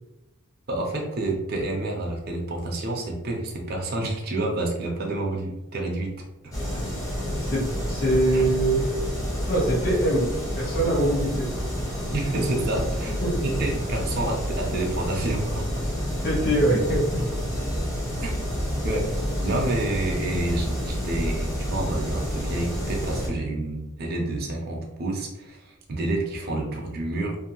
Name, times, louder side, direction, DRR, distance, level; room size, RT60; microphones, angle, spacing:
voice 1, 0.7-6.1 6.4-6.5 8.3-8.4 12.1-13.1 13.4-15.8 18.2-18.3 18.8-27.4, right 2 dB, 45° right, 0 dB, 0.5 m, -29 dB
sound 1, 6.5-23.3, equal, 15° left, 0.9 m, -29 dB
voice 2, 7.5-8.8 9.5-11.5 13.2-13.4 16.2-17.3, right 1 dB, 40° left, -7 dB, 1.4 m, -23 dB
2.6 x 2.5 x 2.8 m, 0.99 s
head